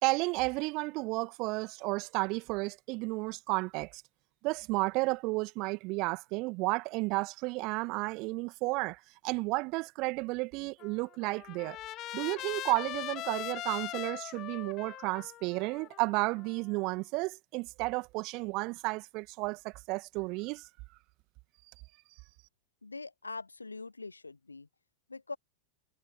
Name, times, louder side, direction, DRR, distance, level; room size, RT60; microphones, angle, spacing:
voice 1, 0.0-4.0 4.4-11.8 12.1-20.7, right 25 dB, 40° right, 2.1 m, -32 dB
Trumpet, 10.8-17.0, left 15 dB, 35° left, 0.8 m, -41 dB
voice 2, 22.8-24.7 25.1-25.4, left 3 dB, 80° left, 1.2 m, -43 dB
figure-of-eight pair, 90°, 0 cm